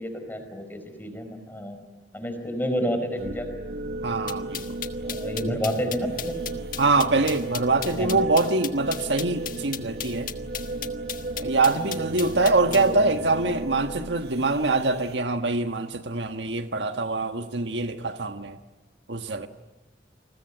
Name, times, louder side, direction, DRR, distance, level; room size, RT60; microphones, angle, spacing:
voice 1, 0.0-1.8 2.1-3.5 5.0-6.3 7.9-8.1 10.8-10.9 12.6-13.0, equal, 10° left, 4.5 m, -30 dB
sound 1, 3.2-15.1, right 2 dB, 65° right, 1.6 m, -35 dB
voice 2, 4.0-4.8 6.8-10.3 11.4-18.6 19.1-19.5, right 3 dB, 85° right, 1.5 m, -24 dB
sound 2, 4.3-12.9, left 10 dB, 50° left, 1.4 m, -35 dB
29.0 x 21.0 x 9.0 m
head